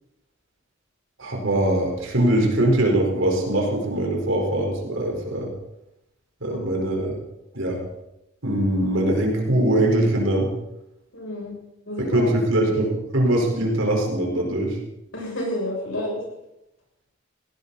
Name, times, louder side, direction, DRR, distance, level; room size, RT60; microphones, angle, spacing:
voice 1, 1.2-5.5 6.4-7.1 7.5-7.8 8.4-10.5 12.0-14.8, right 1 dB, 75° right, 0 dB, 4.8 m, -22 dB
voice 2, 11.1-11.5 11.9-12.4 15.1-16.2, left 1 dB, 75° left, -1 dB, 7.5 m, -29 dB
18.0 x 17.5 x 4.2 m, 0.88 s
head